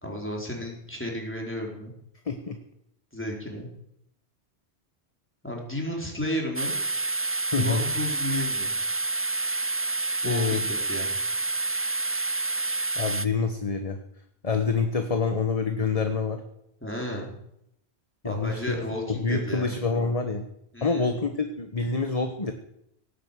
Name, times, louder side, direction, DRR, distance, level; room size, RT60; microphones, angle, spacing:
voice 1, 0.0-1.9 3.1-3.7 5.4-6.8 7.6-8.7 10.2-11.2 16.8-17.3 18.2-19.8 20.7-21.1, left 1 dB, 10° left, -1 dB, 4.3 m, -33 dB
voice 2, 2.2-2.6 7.5-7.8 10.2-10.6 13.0-14.0 14.4-16.4 18.2-18.8 19.1-20.4 20.8-22.5, left 4 dB, 35° left, 6 dB, 1.3 m, -27 dB
sound 1, 6.6-13.3, right 2 dB, 20° right, 0.4 m, -28 dB
18.0 x 9.1 x 8.4 m, 0.77 s
omnidirectional pair, 1.1 m